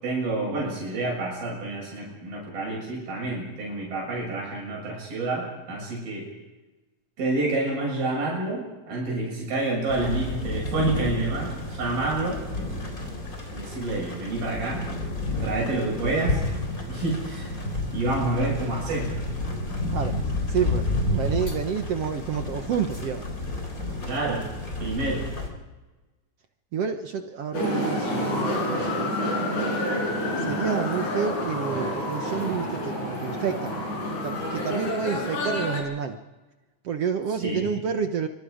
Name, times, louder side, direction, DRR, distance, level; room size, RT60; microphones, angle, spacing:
voice 1, 0.0-6.3 7.2-12.4 13.5-14.8 15.4-16.4 16.9-17.6 17.9-19.1 24.1-24.5 24.8-25.2 37.4-37.7, right 2 dB, 90° right, -3 dB, 9.1 m, -28 dB
sound 1, 9.9-25.5, left 2 dB, 25° left, 4.2 m, -31 dB
voice 2, 20.5-23.3 26.7-29.2 30.4-33.7 34.2-36.2 36.8-38.3, right 7 dB, 60° right, 6 dB, 1.7 m, -29 dB
sound 2, 27.5-35.8, left 1 dB, 55° left, 7.1 m, -28 dB
26.5 x 25.0 x 5.1 m, 1.1 s
omnidirectional pair, 4.1 m